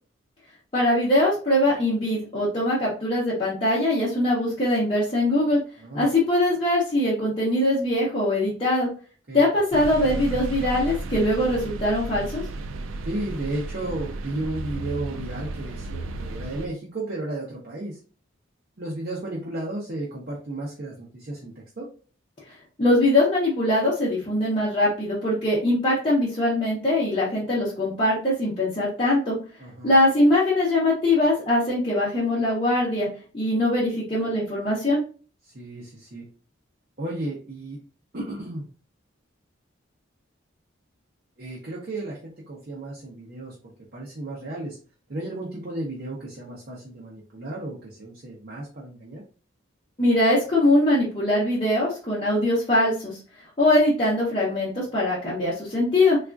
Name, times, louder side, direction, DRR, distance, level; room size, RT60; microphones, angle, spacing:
voice 1, 0.7-5.6 5.9-8.9 9.3-12.4 22.8-29.3 29.8-33.1 33.3-35.0 50.0-53.2 53.6-56.2, left 1 dB, 30° left, -9 dB, 0.8 m, -22 dB
sound 1, 9.7-16.7, right 2 dB, 80° right, 0.3 m, -33 dB
voice 2, 13.0-18.0 18.8-21.9 29.6-29.9 35.5-36.3 37.0-37.8 38.1-38.7 41.4-42.2 42.5-44.8 45.1-49.2, right 2 dB, 50° right, -4 dB, 0.7 m, -33 dB
3.5 x 2.4 x 2.4 m, 0.38 s
head